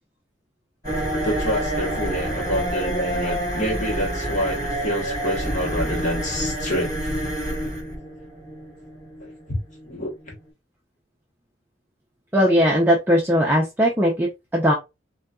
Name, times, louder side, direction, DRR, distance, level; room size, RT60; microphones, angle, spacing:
sound 1, 0.8-10.5, right 1 dB, 20° left, 2.0 m, -28 dB
voice 1, 1.2-7.1 9.2-9.6 9.8-10.1, equal, 40° left, 1.1 m, -27 dB
voice 2, 12.3-14.7, equal, 10° right, 0.6 m, -19 dB
4.0 x 2.3 x 2.3 m
head